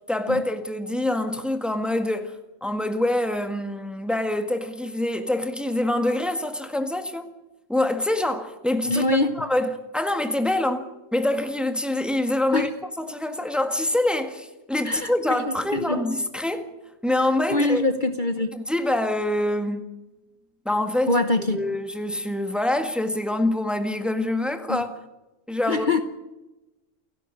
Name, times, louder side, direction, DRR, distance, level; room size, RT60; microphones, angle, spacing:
voice 1, 0.1-7.3 7.7-9.1 9.4-12.7 13.0-16.6 17.0-17.8 18.5-19.8 20.6-21.2 21.5-24.9 25.5-25.9, left 1 dB, ahead, 1.7 m, -25 dB
voice 2, 8.9-9.3 12.5-12.7 14.8-16.0 17.5-18.5 21.1-21.6 24.7-24.8 25.7-26.0, left 2 dB, 40° left, 1.2 m, -24 dB
29.0 x 11.5 x 9.9 m
omnidirectional pair, 1.3 m